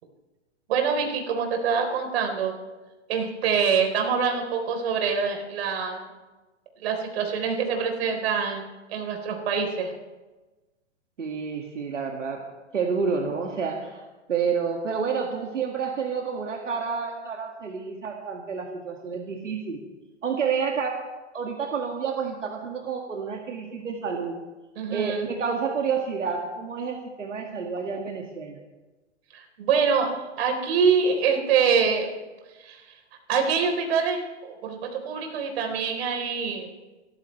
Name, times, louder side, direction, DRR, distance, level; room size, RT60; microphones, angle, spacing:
voice 1, 0.7-2.5 3.1-6.1 6.8-8.6 8.9-9.9 24.8-25.3 29.3-32.1 32.6-32.8 33.3-36.7, right 6 dB, 55° right, 3 dB, 4.0 m, -25 dB
voice 2, 11.2-12.5 12.7-14.0 14.3-19.9 20.2-21.0 21.3-24.4 24.9-28.6, right 6 dB, 90° right, 1 dB, 2.2 m, -29 dB
26.0 x 14.0 x 3.3 m, 1.2 s
hypercardioid pair, 125°, 36 cm